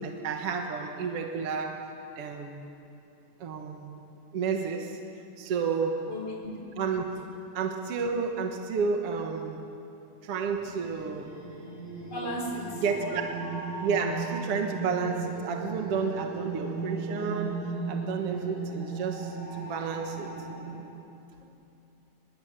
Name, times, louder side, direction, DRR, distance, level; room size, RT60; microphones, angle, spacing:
voice 1, 0.0-1.9 2.2-2.7 3.4-4.0 4.3-5.0 5.4-6.0 6.8-7.1 7.5-9.6 10.2-11.4 12.8-13.2 13.8-20.3, right 5 dB, 55° right, 3 dB, 2.3 m, -31 dB
voice 2, 6.1-6.6 12.1-12.8 21.4-21.5, left 1 dB, 50° left, 0 dB, 5.3 m, -35 dB
sound 1, 10.5-20.7, right 3 dB, 70° right, 6.7 m, -36 dB
24.0 x 22.0 x 9.0 m, 2.7 s
omnidirectional pair, 3.6 m